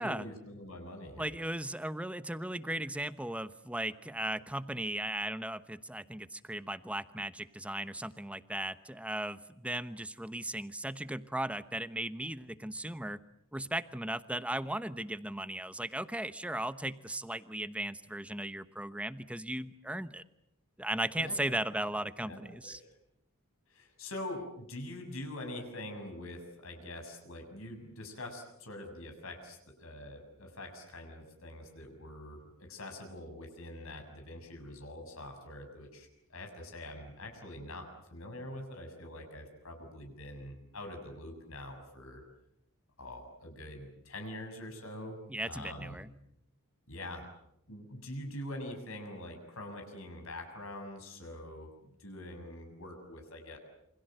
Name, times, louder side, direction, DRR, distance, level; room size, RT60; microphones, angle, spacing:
voice 1, 0.0-1.3 21.2-21.4 22.2-22.9 23.7-42.2 43.0-46.0 46.9-47.3 47.7-53.6, left 1 dB, 65° left, 4 dB, 6.9 m, -44 dB
voice 2, 1.2-13.2 13.5-20.2 20.8-22.8 45.3-46.1, right 1 dB, 5° right, 12 dB, 1.0 m, -37 dB
28.5 x 26.0 x 7.8 m, 0.78 s
head